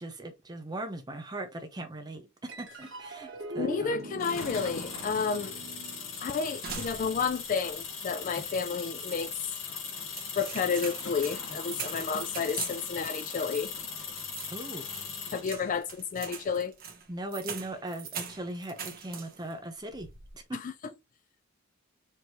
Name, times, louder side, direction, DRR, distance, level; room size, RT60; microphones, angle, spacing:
voice 1, 0.0-4.1 14.5-14.9 17.1-20.1 20.3-20.6, right 1 dB, 20° right, 0.7 m, -39 dB
sound 1, 2.5-9.2, equal, 65° right, 1.3 m, -43 dB
voice 2, 3.6-5.6 6.2-9.3 10.4-13.7 15.3-16.8 20.5-20.7, left 5 dB, 40° left, 0.3 m, -31 dB
sound 2, 4.2-15.5, left 5 dB, 80° left, 1.6 m, -39 dB
sound 3, 6.6-7.5 7.8-7.9 8.4-9.3 9.8-19.5 19.9-20.4, right 6 dB, 50° right, 1.1 m, -43 dB
4.5 x 3.1 x 2.9 m
head